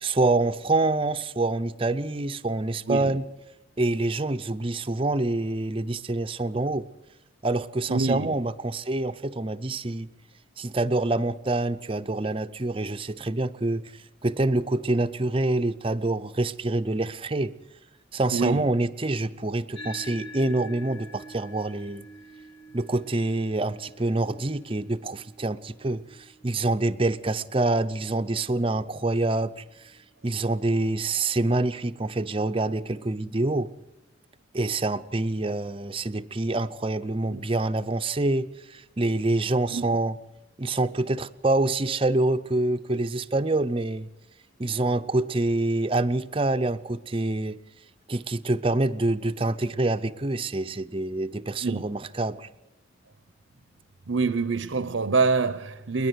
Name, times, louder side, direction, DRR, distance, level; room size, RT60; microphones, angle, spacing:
voice 1, 0.0-3.2 3.8-6.9 7.4-10.1 10.6-13.9 14.2-17.5 18.1-22.0 22.7-29.9 30.2-33.7 34.5-40.2 40.6-44.1 44.6-47.6 48.1-52.5, right 2 dB, 25° right, 0.6 m, -26 dB
voice 2, 7.9-8.3 18.3-18.7 37.3-37.4 39.7-39.9 51.6-51.8 54.1-56.1, right 4 dB, 75° right, 0.8 m, -25 dB
sound 1, 19.7-28.5, equal, 65° left, 3.0 m, -47 dB
28.5 x 11.0 x 9.4 m
head